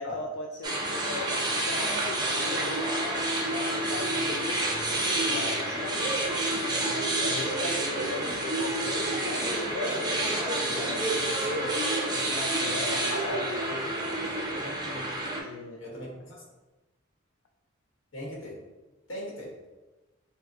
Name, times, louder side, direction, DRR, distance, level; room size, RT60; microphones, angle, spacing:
voice 1, 0.0-2.9 3.5-4.8 5.2-11.8 12.1-13.6 15.4-15.8, left 3 dB, 90° left, 1 dB, 0.4 m, -39 dB
sound 1, 0.6-15.4, right 1 dB, 20° right, 0.5 m, -29 dB
voice 2, 14.6-15.2 15.8-16.1 18.1-18.6 19.1-19.5, left 1 dB, 70° left, -4 dB, 1.2 m, -38 dB
5.5 x 2.1 x 2.7 m, 1.1 s
head